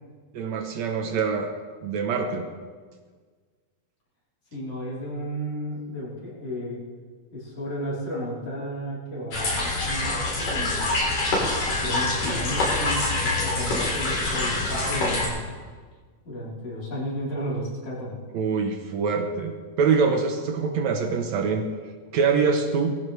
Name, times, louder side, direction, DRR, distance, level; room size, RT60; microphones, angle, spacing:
voice 1, 0.3-1.5 1.8-2.5 18.3-21.7 22.1-22.9, right 5 dB, 70° right, 5 dB, 2.2 m, -24 dB
voice 2, 4.5-6.8 7.3-10.9 11.7-15.5 16.2-18.2, equal, 55° left, -7 dB, 5.0 m, -33 dB
sound 1, 9.3-15.3, left 2 dB, 70° left, 5.1 m, -25 dB
19.5 x 15.0 x 3.3 m, 1.5 s
omnidirectional pair, 3.5 m